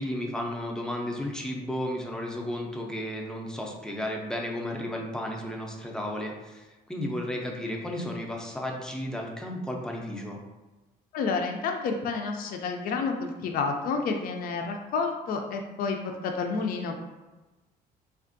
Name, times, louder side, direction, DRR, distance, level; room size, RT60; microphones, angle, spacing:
voice 1, 0.0-10.4, left 1 dB, 5° left, 0 dB, 0.5 m, -33 dB
voice 2, 11.1-17.0, left 4 dB, 60° left, 3 dB, 0.4 m, -30 dB
3.4 x 2.4 x 2.5 m, 1.1 s
cardioid pair, 110°, 17 cm